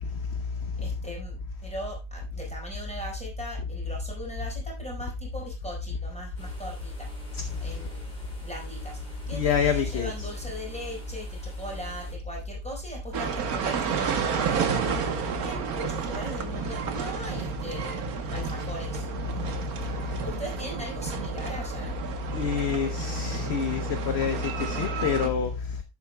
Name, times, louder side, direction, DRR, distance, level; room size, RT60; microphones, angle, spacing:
voice 1, 0.8-7.1 7.6-14.6 14.9-18.1 18.3-19.1 20.0-22.0, right 1 dB, 5° left, 4.6 m, -37 dB
sound 1, 6.3-12.1, equal, 25° left, 5.1 m, -50 dB
voice 2, 9.3-10.3 22.3-25.5, left 6 dB, 50° left, 0.8 m, -27 dB
sound 2, 13.1-25.3, right 7 dB, 65° right, 1.5 m, -31 dB
11.0 x 8.4 x 2.2 m
omnidirectional pair, 1.8 m